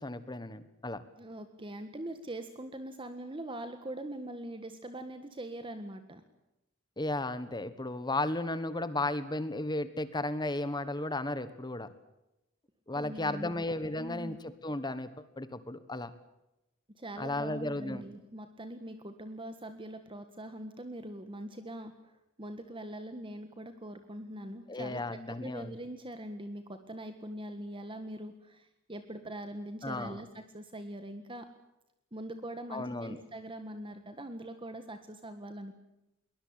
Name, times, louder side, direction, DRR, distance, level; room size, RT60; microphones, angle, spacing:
voice 1, 0.0-1.0 7.0-11.9 12.9-15.1 15.4-16.1 17.2-18.0 24.7-25.7 29.8-30.2 32.7-33.2, left 2 dB, 20° left, 13 dB, 1.4 m, -34 dB
voice 2, 1.2-6.2 12.9-13.7 14.0-14.4 17.0-21.9 22.4-31.5 32.1-35.7, right 1 dB, 25° right, 8 dB, 1.6 m, -42 dB
22.5 x 20.0 x 8.8 m, 0.92 s
head